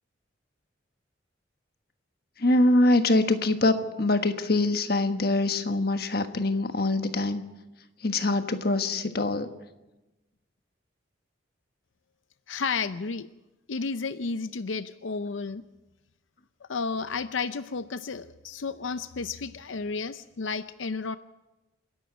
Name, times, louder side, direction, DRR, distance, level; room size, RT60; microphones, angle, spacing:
voice 1, 2.4-7.4 8.0-9.5, left 2 dB, 55° left, 8 dB, 1.4 m, -24 dB
voice 2, 12.5-13.3 13.7-15.6 16.7-21.2, left 4 dB, 90° left, 12 dB, 0.6 m, -32 dB
27.5 x 11.0 x 9.3 m, 1.0 s
head